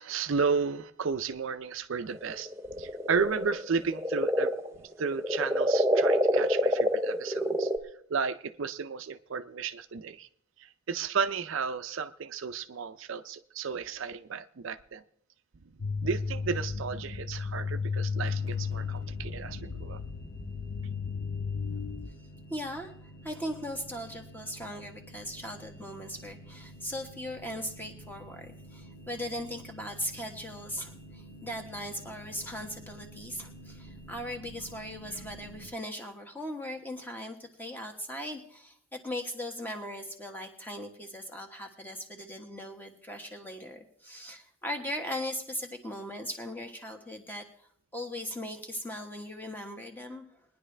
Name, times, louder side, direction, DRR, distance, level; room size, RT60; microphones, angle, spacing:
voice 1, 0.0-2.5 2.8-4.5 5.0-7.7 8.1-10.3 10.9-15.0 16.0-20.0, right 5 dB, 70° right, 10 dB, 0.5 m, -33 dB
sound 1, 2.1-7.8, equal, 10° right, 0.7 m, -27 dB
sound 2, 15.8-22.1, left 5 dB, 55° left, 0.7 m, -34 dB
sound 3, 18.2-35.7, right 1 dB, 80° left, 2.3 m, -50 dB
voice 2, 22.5-22.9 23.2-50.3, equal, 10° left, 3 dB, 1.4 m, -39 dB
20.5 x 10.5 x 3.3 m, 0.64 s
head